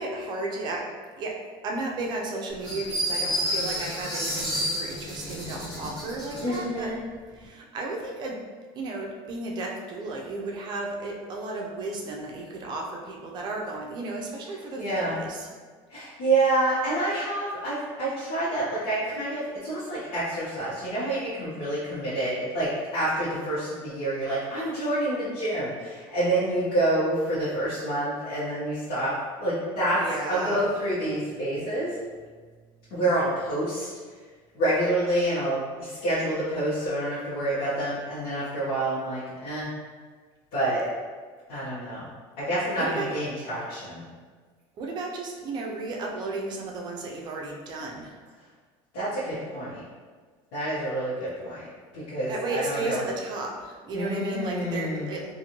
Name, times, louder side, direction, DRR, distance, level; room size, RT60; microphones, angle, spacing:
voice 1, 0.0-7.0 7.3-8.4 8.7-15.5 30.0-30.6 42.8-43.1 44.8-48.2 52.3-55.3, right 2 dB, 35° right, 0 dB, 0.5 m, -34 dB
sound 1, 2.6-6.6, equal, 5° left, 1.2 m, -30 dB
voice 2, 6.4-7.0 14.8-15.2 15.9-29.1 29.4-30.0 30.3-31.9 32.9-33.9 34.5-39.7 40.5-40.8 41.5-42.1 42.4-44.0 48.9-49.8 50.5-51.6 51.9-53.0 53.9-55.1, right 1 dB, 90° left, -12 dB, 1.0 m, -28 dB
2.6 x 2.5 x 2.9 m, 1.5 s
cardioid pair, 145°, 12 cm